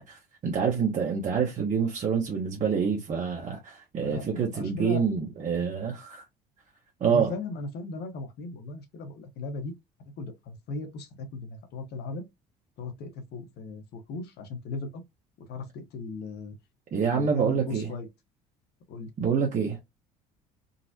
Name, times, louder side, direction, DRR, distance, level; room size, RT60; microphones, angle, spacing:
voice 1, 0.0-6.2 7.0-7.3 16.9-17.9 19.2-19.8, right 6 dB, 40° right, 0.9 m, -27 dB
voice 2, 4.0-5.0 7.0-9.7 10.1-12.2 12.8-15.0 15.5-16.5 17.0-18.1 18.9-19.1, left 3 dB, 60° left, 1.1 m, -37 dB
3.9 x 2.1 x 2.7 m
hypercardioid pair, 65°, 19 cm